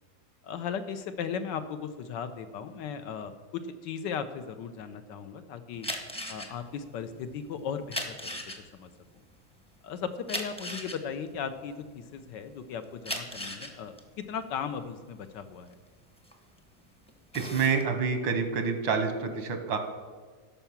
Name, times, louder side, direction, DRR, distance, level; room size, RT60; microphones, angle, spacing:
voice 1, 0.4-5.9 6.3-8.4 8.7-8.9 9.8-15.7, left 7 dB, 75° left, 10 dB, 1.3 m, -37 dB
sound 1, 5.7-12.3 12.8-16.7 17.1-17.8, left 1 dB, 5° left, 0.7 m, -38 dB
voice 2, 17.3-19.8, right 5 dB, 85° right, 7 dB, 1.9 m, -28 dB
12.5 x 5.7 x 7.2 m, 1.5 s
omnidirectional pair, 2.0 m